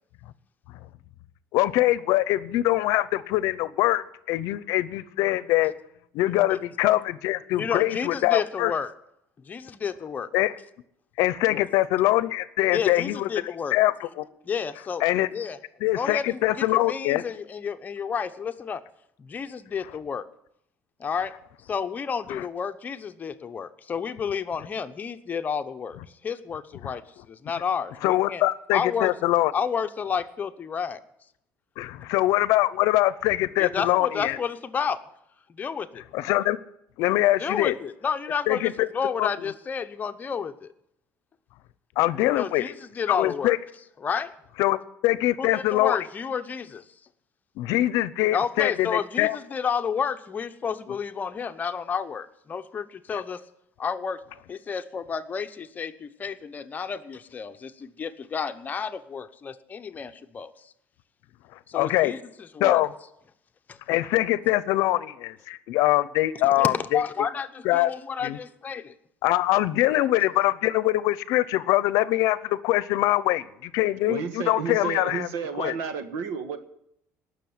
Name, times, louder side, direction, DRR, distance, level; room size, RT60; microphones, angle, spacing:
voice 1, 1.5-5.7 6.1-8.7 10.3-10.5 11.2-13.3 13.7-14.3 15.0-15.3 15.8-17.2 22.3-22.4 26.8-26.9 28.0-29.5 31.8-34.4 36.1-36.6 37.0-37.7 38.5-38.9 39.2-39.3 42.0-42.7 43.1-43.6 44.6-46.0 47.6-49.4 61.7-62.1 62.6-62.9 63.9-67.0 67.6-67.9 68.2-68.4 69.2-75.3 75.6-75.7, left 16 dB, 75° left, 17 dB, 0.7 m, -23 dB
voice 2, 7.5-8.9 9.4-10.3 11.5-11.6 12.7-13.8 14.4-15.0 15.3-15.6 15.9-18.8 19.2-20.2 21.0-21.3 21.7-27.0 27.3-28.4 28.7-29.1 29.5-31.0 33.6-35.0 35.5-36.0 37.4-40.7 42.4-43.6 44.0-44.3 45.4-46.8 48.3-53.4 53.8-54.2 54.5-60.7 61.7-62.8 63.7-63.8 66.5-68.9, left 6 dB, 30° left, 9 dB, 0.9 m, -31 dB
voice 3, 74.1-76.6, right 6 dB, 80° right, 10 dB, 1.5 m, -31 dB
19.0 x 6.4 x 9.5 m, 0.76 s
cardioid pair, 125°, 6 cm